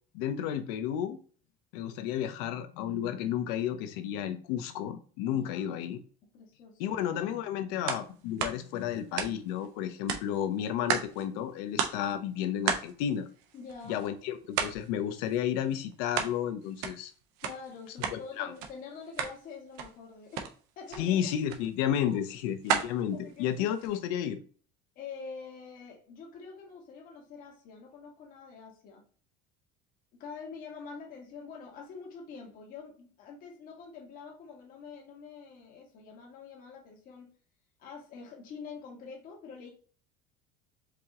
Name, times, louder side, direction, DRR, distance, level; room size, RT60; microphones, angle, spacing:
voice 1, 0.1-1.2 1.7-6.0 6.8-13.3 13.9-17.1 18.1-18.5 21.0-24.4, left 10 dB, 80° left, 0.7 m, -32 dB
voice 2, 5.3-5.7 6.3-7.0 13.5-14.1 17.4-20.5 20.7-21.3 22.0-22.2 23.1-23.7 24.9-29.0 30.2-37.3 37.8-39.7, left 5 dB, 45° left, 1.6 m, -46 dB
sound 1, 7.9-8.1 8.4-9.7 10.1-11.2 11.5-11.6 11.8-12.1 12.7-14.1 14.5-14.9 15.2-16.4 16.6-18.2 18.5-18.7 19.0-19.4 19.7-20.0 20.3-20.5 20.9-21.0 21.5-21.7 22.1-24.0, right 7 dB, 80° right, 0.8 m, -33 dB
5.0 x 2.9 x 3.6 m
cardioid pair, 165°, 20 cm